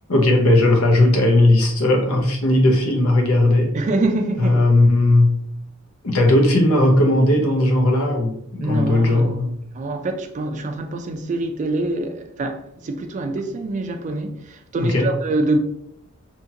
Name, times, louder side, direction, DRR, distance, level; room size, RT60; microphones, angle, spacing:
voice 1, 0.1-3.8 4.4-5.3 6.0-9.5 14.8-15.1, left 1 dB, 75° left, 0.7 m, -17 dB
voice 2, 3.7-4.6 8.6-9.3 9.7-15.6, right 2 dB, 35° right, 0.3 m, -25 dB
2.8 x 2.5 x 2.7 m
head